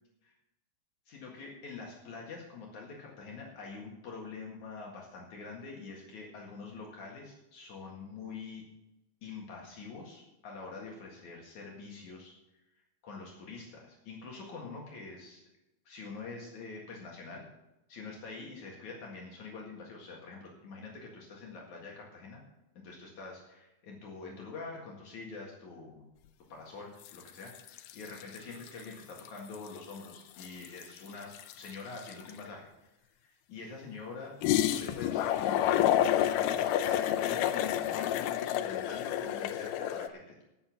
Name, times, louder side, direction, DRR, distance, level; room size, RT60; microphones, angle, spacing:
voice 1, 1.1-8.6 9.2-12.3 13.0-15.4 15.9-17.4 17.9-22.4 22.7-26.0 26.5-31.3 31.6-32.7 33.0-34.3 34.7-40.4, left 4 dB, 65° left, -1 dB, 3.2 m, -45 dB
sound 1, 27.1-27.3 27.5-28.8 29.2-29.3 29.5-32.4 34.4-40.1, left 11 dB, 80° left, 2.3 m, -29 dB
16.5 x 6.8 x 5.9 m, 0.94 s
omnidirectional pair, 3.7 m